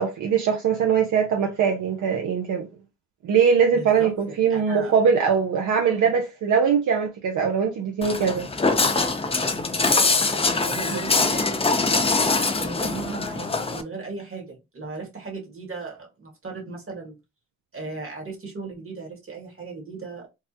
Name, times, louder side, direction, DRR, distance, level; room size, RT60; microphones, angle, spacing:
voice 1, 0.0-2.7 3.2-8.5 10.9-11.0, right 6 dB, 75° right, 0.7 m, -21 dB
voice 2, 3.7-4.1 4.4-4.9 9.7-11.7 12.6-17.2 17.7-20.3, right 4 dB, 45° right, 1.7 m, -37 dB
Walk footsteps, 8.0-13.8, left 3 dB, 20° left, 0.5 m, -23 dB
3.3 x 2.2 x 2.8 m
cardioid pair, 65°, 30 cm